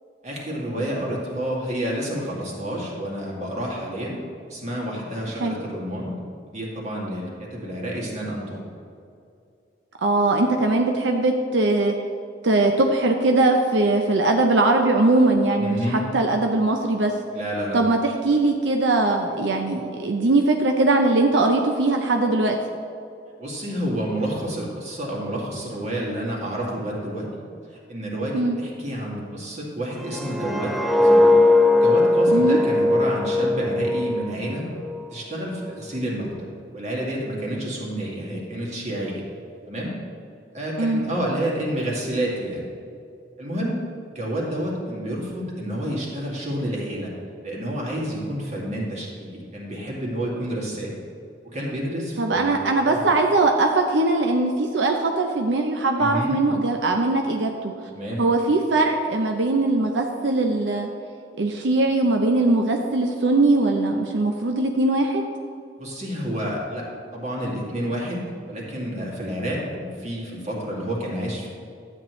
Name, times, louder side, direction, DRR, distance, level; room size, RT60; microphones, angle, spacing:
voice 1, 0.2-4.2 4.5-6.1 6.5-8.6 15.6-16.0 17.3-17.8 23.4-27.4 27.7-31.3 31.8-34.7 35.1-36.3 36.7-39.2 39.6-39.9 40.5-42.6 43.4-43.8 44.1-47.1 47.4-50.9 51.5-52.5 52.8-53.0 56.0-56.3 57.9-58.2 65.8-71.5, right 1 dB, 40° right, -3 dB, 2.3 m, -29 dB
voice 2, 10.0-11.9 12.4-15.8 16.1-17.1 17.7-18.0 18.2-22.6 28.3-28.6 32.3-32.6 40.8-41.0 52.2-57.7 58.2-60.9 61.4-65.2, right 2 dB, 85° right, 3 dB, 0.6 m, -20 dB
sound 1, 30.0-35.0 35.4-35.7, left 2 dB, ahead, 0.4 m, -19 dB
12.0 x 8.7 x 3.1 m, 2.5 s
head